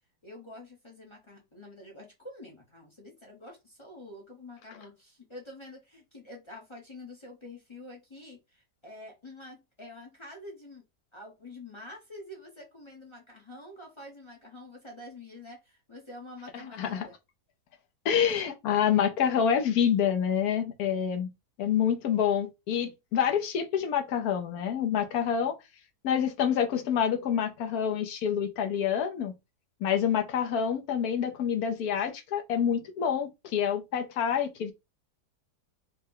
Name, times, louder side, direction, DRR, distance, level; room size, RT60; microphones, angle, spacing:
voice 1, 0.2-10.8 11.1-17.2, left 1 dB, 25° left, 0.6 m, -47 dB
voice 2, 18.0-21.3 21.6-25.5 26.0-29.3 29.8-34.7, left 8 dB, 70° left, 1.1 m, -27 dB
4.2 x 2.1 x 3.7 m
omnidirectional pair, 1.8 m